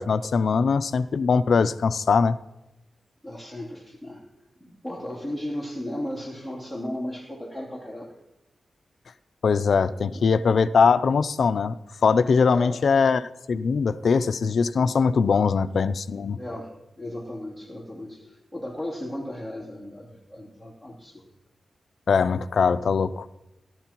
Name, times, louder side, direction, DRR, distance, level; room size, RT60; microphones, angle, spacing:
voice 1, 0.0-2.4 9.4-11.7 12.0-16.4 22.1-23.3, left 5 dB, 65° left, 12 dB, 0.4 m, -21 dB
voice 2, 3.2-4.3 4.6-8.2 10.0-10.3 12.4-12.8 16.3-21.3, left 1 dB, 10° right, -3 dB, 3.0 m, -35 dB
17.5 x 12.0 x 3.0 m, 0.94 s
wide cardioid pair, 145°, 0 cm